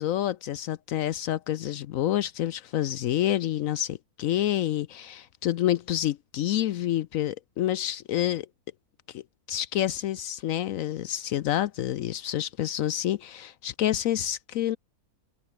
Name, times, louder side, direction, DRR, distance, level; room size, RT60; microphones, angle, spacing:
voice 1, 0.0-8.5 9.1-9.2 9.5-14.8, left 12 dB, 70° left, 0.9 m, -28 dB
open air
omnidirectional pair, 1.6 m